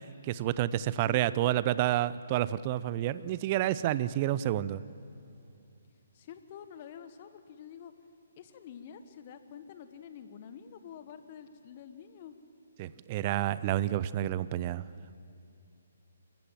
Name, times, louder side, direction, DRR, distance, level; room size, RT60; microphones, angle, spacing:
voice 1, 0.2-4.8 12.8-14.8, right 13 dB, 35° right, 17 dB, 0.6 m, -29 dB
voice 2, 1.0-1.6 6.1-7.9 8.4-12.3, left 8 dB, 40° left, 10 dB, 1.4 m, -48 dB
27.0 x 15.0 x 7.5 m, 2.6 s
figure-of-eight pair, 135°, 0 cm